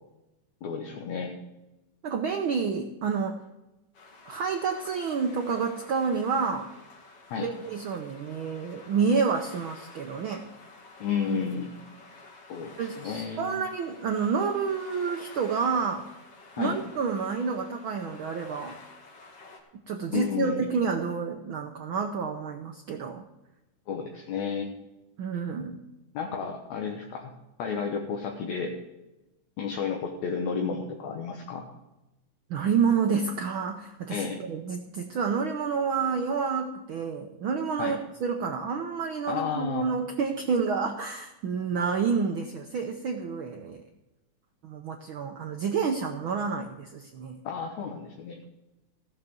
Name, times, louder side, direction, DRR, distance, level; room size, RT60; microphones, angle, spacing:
voice 1, 0.6-1.3 7.3-7.5 11.0-11.7 12.5-13.6 16.6-16.8 20.1-20.7 23.9-24.7 26.1-27.3 27.6-28.7 29.6-31.6 34.1-34.4 37.8-38.0 39.3-39.8 47.4-48.4, left 6 dB, 70° left, 1 dB, 2.4 m, -32 dB
voice 2, 2.0-3.4 4.3-6.7 7.4-10.4 12.8-16.0 16.6-18.8 19.9-23.2 25.2-25.8 32.5-43.8 44.6-47.4, right 5 dB, 70° right, 4 dB, 1.2 m, -29 dB
sound 1, 3.9-19.6, left 3 dB, 55° left, 3.0 m, -50 dB
15.0 x 6.7 x 7.1 m, 0.99 s
omnidirectional pair, 3.3 m